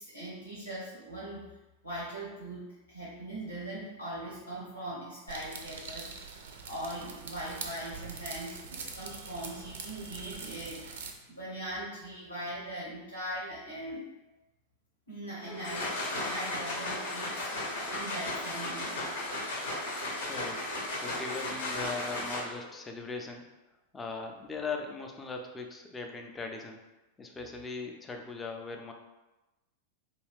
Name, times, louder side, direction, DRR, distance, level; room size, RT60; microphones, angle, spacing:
voice 1, 0.0-1.5 1.8-6.1 6.7-14.1 15.1-19.0, right 1 dB, 90° left, -7 dB, 0.9 m, -40 dB
sound 1, 5.3-11.1, right 5 dB, 60° right, 0.3 m, -43 dB
sound 2, 15.4-22.8, left 2 dB, 60° left, 0.6 m, -35 dB
voice 2, 20.3-20.6 21.0-23.4 23.9-26.8 27.2-28.9, left 4 dB, 15° left, 3 dB, 0.4 m, -39 dB
2.7 x 2.3 x 3.4 m, 1.0 s
figure-of-eight pair, 90°, 0 cm